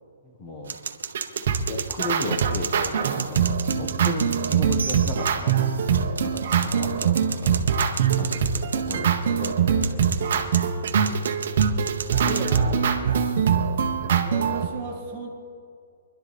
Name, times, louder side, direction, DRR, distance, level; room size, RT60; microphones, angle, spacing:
voice 1, 0.2-0.8 1.7-7.6 8.2-10.5, left 2 dB, 15° left, 3 dB, 1.4 m, -35 dB
sound 1, 0.7-12.6, right 6 dB, 80° right, 1.0 m, -35 dB
sound 2, 1.1-14.7, right 7 dB, 40° right, 1.1 m, -23 dB
voice 2, 12.3-13.3 14.2-15.3, right 3 dB, ahead, -10 dB, 2.2 m, -35 dB
24.5 x 11.5 x 4.3 m, 2.3 s
hypercardioid pair, 175°, 0 cm